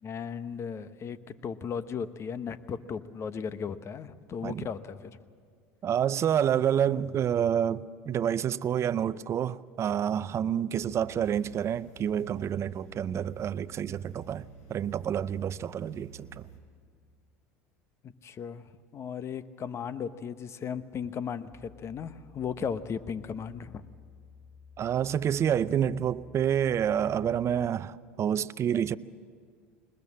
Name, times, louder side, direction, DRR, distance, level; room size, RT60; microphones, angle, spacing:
voice 1, 0.0-5.1 18.0-18.6 18.9-23.8, left 7 dB, 40° left, 1.1 m, -36 dB
voice 2, 5.8-16.5 24.8-29.0, right 9 dB, 40° right, 0.6 m, -28 dB
sound 1, 10.8-16.6, right 5 dB, 75° left, 4.8 m, -51 dB
sound 2, 21.5-27.7, left 7 dB, 5° left, 1.0 m, -54 dB
21.5 x 20.5 x 7.5 m
hypercardioid pair, 80°, 7 cm